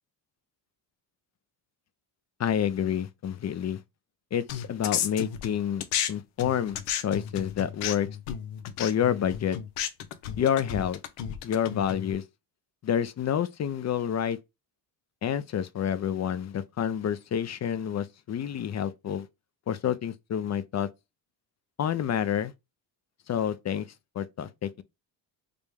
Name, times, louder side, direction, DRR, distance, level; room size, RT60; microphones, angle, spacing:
voice 1, 2.4-3.8 4.3-6.8 7.0-8.1 8.8-9.6 10.4-11.0 11.4-12.2 12.8-14.4 15.2-19.3 19.7-20.9 21.8-22.5 23.3-23.9 24.2-24.8, left 9 dB, 35° left, 0.5 m, -28 dB
sound 1, 4.5-6.1 6.4-12.1, left 10 dB, 80° left, 0.8 m, -33 dB
5.1 x 2.2 x 3.4 m
cardioid pair, 90°, 49 cm